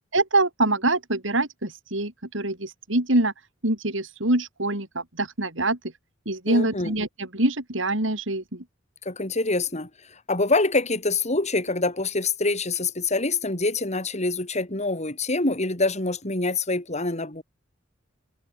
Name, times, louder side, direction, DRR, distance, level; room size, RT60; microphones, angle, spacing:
voice 1, 0.1-3.3 3.6-5.8 6.3-7.1 7.3-8.6, right 2 dB, 70° right, 4.8 m, -24 dB
voice 2, 6.5-7.0 9.0-17.4, left 3 dB, 35° left, 4.6 m, -25 dB
head